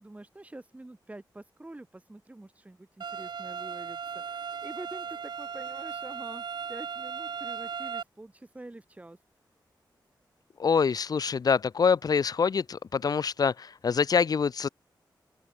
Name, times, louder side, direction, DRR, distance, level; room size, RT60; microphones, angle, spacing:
voice 1, 0.0-9.2, right 2 dB, 20° right, 6.8 m, -46 dB
sound 1, 3.0-8.0, right 6 dB, 70° right, 1.3 m, -37 dB
voice 2, 10.6-14.7, left 6 dB, 55° left, 0.9 m, -25 dB
open air
wide cardioid pair, 110°, 8 cm